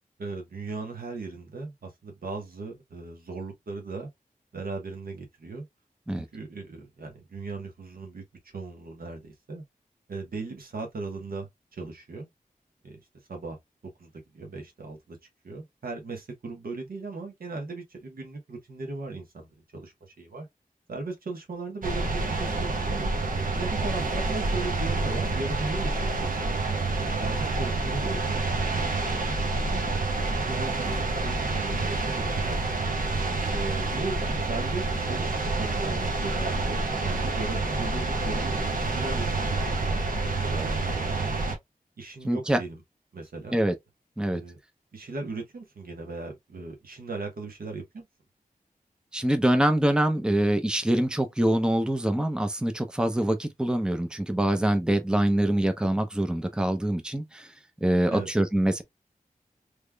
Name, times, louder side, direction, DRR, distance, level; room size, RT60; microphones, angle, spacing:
voice 1, 0.2-4.1 4.5-5.7 6.1-8.2 8.5-9.6 10.1-12.3 12.8-13.0 13.3-13.6 14.0-15.2 15.4-20.5 20.9-23.1 23.5-26.5 27.0-29.8 30.4-32.9 33.5-40.2 40.5-41.3 42.0-42.8 43.1-43.6 44.3-44.6 44.9-48.1 58.1-58.3, right 3 dB, 85° right, 1.2 m, -38 dB
sound 1, 21.8-41.6, right 3 dB, 70° right, 1.0 m, -28 dB
voice 2, 42.2-42.6 43.5-43.7 44.2-44.4 49.1-57.5 57.8-58.8, right 1 dB, 5° right, 0.6 m, -24 dB
3.5 x 3.2 x 2.3 m
wide cardioid pair, 100°, 15 cm